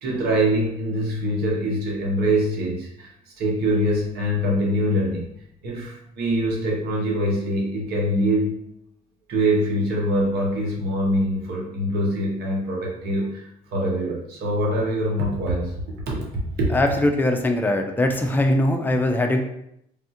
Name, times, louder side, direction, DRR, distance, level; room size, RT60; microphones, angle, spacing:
voice 1, 0.0-5.2 5.6-8.6 9.3-15.7 16.1-16.7, equal, 70° right, -3 dB, 0.9 m, -24 dB
voice 2, 16.7-19.4, left 1 dB, 10° left, 4 dB, 0.4 m, -21 dB
3.4 x 2.4 x 2.7 m, 0.76 s
cardioid pair, 110°, 17 cm